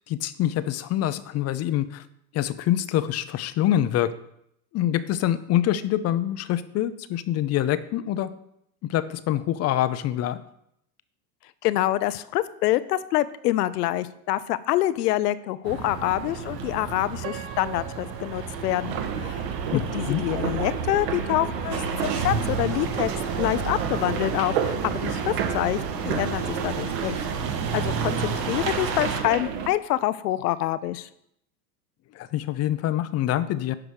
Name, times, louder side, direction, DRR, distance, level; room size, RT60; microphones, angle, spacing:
voice 1, 0.1-2.0 2.3-4.1 4.7-8.3 8.9-10.4 19.7-20.2 32.1-33.7, left 12 dB, 30° left, 14 dB, 0.7 m, -25 dB
voice 2, 11.6-19.4 19.7-27.3 27.7-31.1, left 14 dB, 70° left, 16 dB, 0.9 m, -26 dB
sound 1, 15.7-29.2, right 5 dB, 80° right, 1.9 m, -32 dB
Piano, 17.2-20.2 20.8-20.9 21.6-21.8, right 12 dB, 30° right, 1.3 m, -43 dB
sound 2, 18.8-29.7, right 7 dB, 55° right, 1.7 m, -31 dB
11.0 x 4.9 x 6.4 m, 0.76 s
hypercardioid pair, 110°, 49 cm